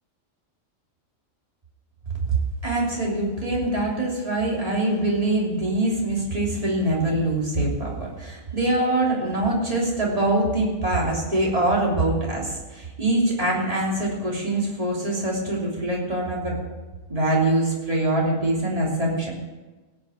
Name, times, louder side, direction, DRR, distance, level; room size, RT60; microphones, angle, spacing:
voice 1, 2.3-16.6 17.1-19.3, right 2 dB, 25° right, -3 dB, 3.2 m, -24 dB
17.0 x 6.1 x 8.6 m, 1.2 s
omnidirectional pair, 1.4 m